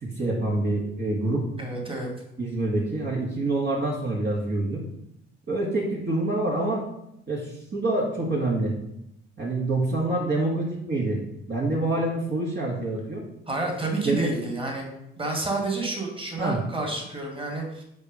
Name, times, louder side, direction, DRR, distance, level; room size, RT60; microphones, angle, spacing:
voice 1, 0.0-1.5 2.4-4.8 5.5-6.8 7.3-8.8 9.4-11.2 11.5-13.2 14.0-14.3 16.4-16.6, right 2 dB, 35° right, -4 dB, 1.9 m, -26 dB
voice 2, 1.6-2.1 13.5-14.9 15.2-17.8, right 2 dB, 15° right, 1 dB, 2.3 m, -29 dB
5.3 x 4.8 x 5.6 m, 0.82 s
hypercardioid pair, 55°, 30 cm